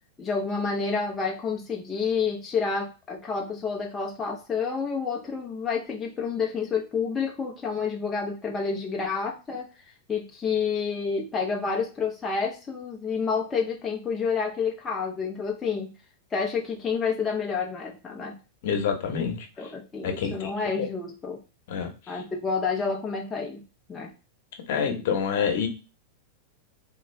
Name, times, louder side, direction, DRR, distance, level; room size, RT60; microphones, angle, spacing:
voice 1, 0.2-9.7 10.1-15.9 16.3-18.4 19.6-21.4 22.1-23.6 23.9-24.1 24.7-25.1, left 5 dB, 10° left, 0 dB, 0.4 m, -29 dB
voice 2, 18.6-19.4 20.0-20.5 20.8-20.9 21.7-21.9 24.7-25.7, left 6 dB, 55° left, 5 dB, 0.8 m, -26 dB
3.5 x 2.4 x 3.2 m, 0.31 s
supercardioid pair, 165°, 0 cm